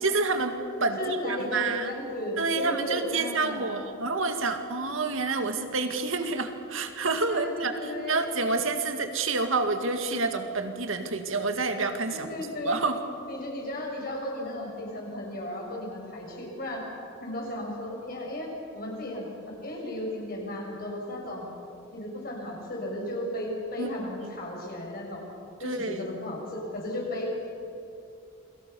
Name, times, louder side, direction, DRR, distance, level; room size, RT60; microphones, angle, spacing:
voice 1, 0.0-1.9 2.4-13.0 23.8-24.3 25.6-26.0, right 3 dB, 75° right, 6 dB, 2.2 m, -28 dB
voice 2, 1.0-3.8 7.3-8.2 12.1-12.8 13.3-16.9 17.2-21.5 21.9-25.2 25.6-27.3, left 1 dB, 45° left, -1 dB, 6.8 m, -35 dB
29.0 x 23.0 x 7.0 m, 2.7 s
head